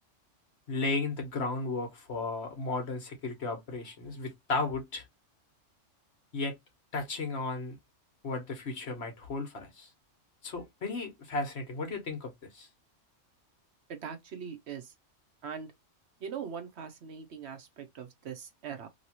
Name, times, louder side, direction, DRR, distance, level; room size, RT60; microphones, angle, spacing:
voice 1, 0.7-5.0 6.3-6.5 6.9-7.8 8.2-9.9 10.4-12.7, left 3 dB, 60° left, 1.2 m, -34 dB
voice 2, 13.9-14.9 15.4-15.7 16.2-18.9, right 7 dB, 60° right, 1.0 m, -41 dB
3.0 x 2.9 x 2.8 m
omnidirectional pair, 1.3 m